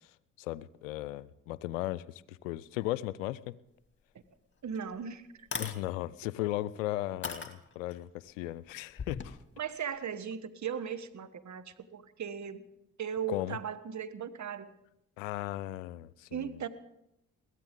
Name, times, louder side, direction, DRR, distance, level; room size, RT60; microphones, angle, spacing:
voice 1, 0.4-3.5 5.6-9.4 13.3-13.6 15.2-16.6, left 16 dB, 90° left, 20 dB, 0.5 m, -36 dB
sound 1, 4.2-4.3 4.7-4.8 5.4-5.8 6.5-6.6 7.2-8.0 8.9-9.3, left 5 dB, 30° left, 2.4 m, -37 dB
voice 2, 4.6-5.5 9.6-12.6 13.0-14.7 16.3-16.7, right 7 dB, 50° right, 11 dB, 1.4 m, -37 dB
22.0 x 16.0 x 3.8 m, 0.84 s
hypercardioid pair, 45°, 38 cm